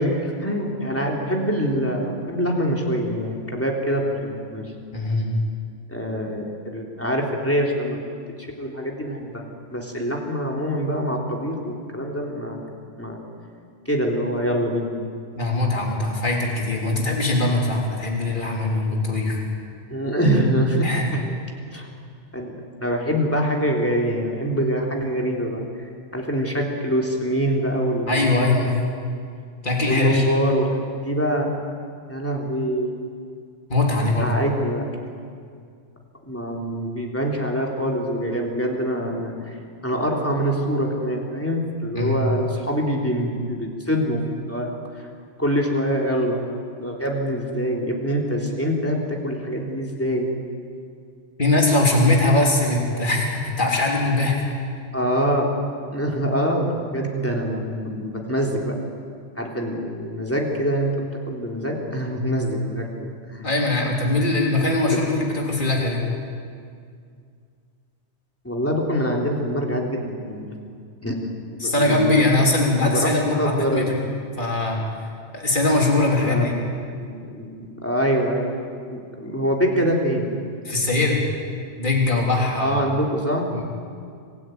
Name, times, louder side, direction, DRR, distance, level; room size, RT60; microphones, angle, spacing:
voice 1, 0.0-4.6 5.9-8.0 8.4-9.4 9.7-12.6 13.0-13.2 13.8-14.9 19.9-20.9 21.1-21.2 21.7-21.9 22.3-25.6 26.1-28.2 29.9-31.5 32.1-33.0 34.2-34.9 36.2-39.6 39.8-44.2 44.5-44.7 45.4-46.4 46.8-50.3 54.9-55.5 55.9-58.7 59.4-60.9 61.3-63.5 64.9-65.0 68.4-70.5 71.0-71.1 71.5-72.2 72.8-73.9 76.2-76.6 77.0-78.6 78.9-80.3 82.6-83.6, equal, 10° left, -1 dB, 3.5 m, -24 dB
voice 2, 4.9-5.4 15.4-19.4 20.8-21.1 28.1-28.9 29.6-30.2 33.7-34.3 42.0-42.2 51.4-54.5 63.4-66.0 71.6-74.0 74.4-74.8 75.3-76.5 80.7-81.2 81.8-82.8 83.5-83.6, left 2 dB, 45° left, -1 dB, 3.6 m, -21 dB
26.0 x 16.0 x 9.3 m, 2.2 s
omnidirectional pair, 1.2 m